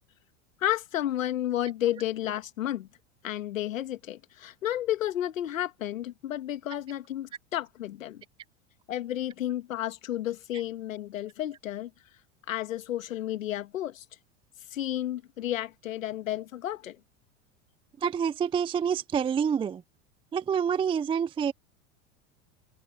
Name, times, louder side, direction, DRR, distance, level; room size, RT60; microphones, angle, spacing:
voice 1, 0.6-2.9 3.2-8.2 8.9-11.9 12.5-14.0 14.7-17.0, left 12 dB, 90° left, 2.0 m, -32 dB
voice 2, 18.0-19.8 20.3-21.5, right 7 dB, 15° right, 0.4 m, -27 dB
open air
hypercardioid pair, 100°, 39 cm